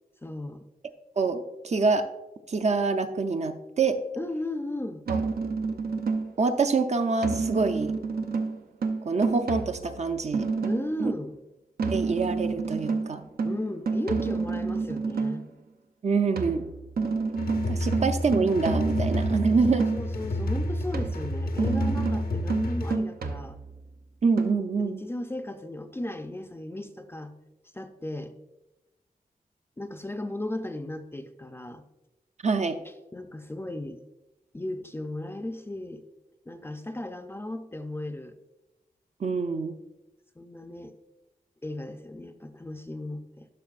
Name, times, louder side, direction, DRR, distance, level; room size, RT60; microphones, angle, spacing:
voice 1, 0.2-0.7 4.2-5.0 10.6-11.4 13.4-15.5 17.7-17.9 19.3-19.5 19.9-23.6 24.8-27.3 27.7-28.3 29.8-31.8 33.1-34.0 34.5-36.0 36.5-38.4 40.4-40.9 41.6-43.5, left 1 dB, 15° left, 8 dB, 0.4 m, -35 dB
voice 2, 1.2-2.1 2.5-4.0 5.1-5.2 6.4-7.9 9.0-10.5 11.0-11.1 11.9-13.2 16.0-16.7 17.7-19.8 24.2-25.0 32.4-32.8 39.2-39.7, right 4 dB, 50° right, 8 dB, 0.5 m, -26 dB
sound 1, 5.1-6.5 7.2-11.0 11.8-15.5 16.4-20.2 20.9-23.9 24.4-24.5, right 4 dB, 85° right, 0.6 m, -29 dB
sound 2, 17.4-23.0, left 1 dB, 75° left, 0.7 m, -30 dB
11.5 x 6.0 x 2.4 m, 0.99 s
wide cardioid pair, 140°, 15 cm